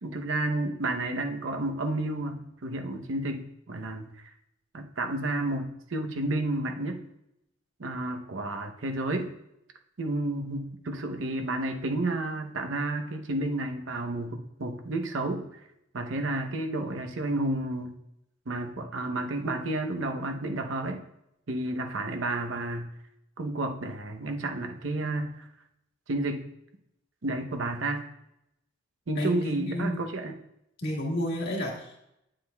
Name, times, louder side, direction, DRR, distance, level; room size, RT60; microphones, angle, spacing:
voice 1, 0.0-4.3 4.7-7.0 7.8-9.3 10.0-15.5 15.9-18.0 18.5-21.0 21.5-22.9 23.4-25.5 26.1-26.5 27.2-28.0 29.1-30.4, right 2 dB, 75° right, 4 dB, 0.7 m, -31 dB
voice 2, 29.2-30.1 30.8-32.0, equal, 55° left, -2 dB, 1.7 m, -31 dB
8.8 x 7.4 x 2.3 m, 0.81 s
head